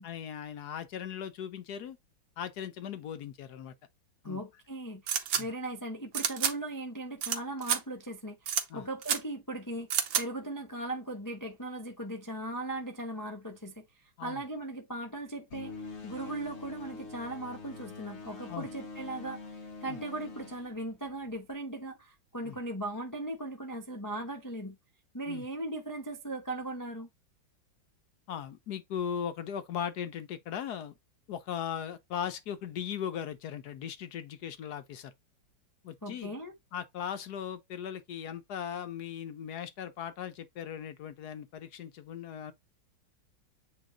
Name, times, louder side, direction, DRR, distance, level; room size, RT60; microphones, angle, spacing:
voice 1, 0.0-2.0 2.4-3.7 4.2-4.4 5.4-5.5 8.7-8.9 14.2-14.4 18.5-18.7 19.9-20.0 22.4-22.6 25.3-25.5 28.3-31.0 31.3-35.1 35.8-36.3 36.7-42.5, left 8 dB, 65° left, 1.1 m, -38 dB
voice 2, 4.2-15.7 16.0-24.8 25.1-27.1 36.0-36.5, right 1 dB, 15° left, 0.7 m, -38 dB
sound 1, 5.1-5.4 6.1-6.5 7.2-7.4 7.6-7.8 8.5-8.6 9.0-9.2 9.9-10.2, right 9 dB, 70° right, 1.6 m, -29 dB
sound 2, 15.5-21.5, left 3 dB, 50° left, 0.9 m, -45 dB
8.6 x 2.9 x 3.7 m
omnidirectional pair, 2.2 m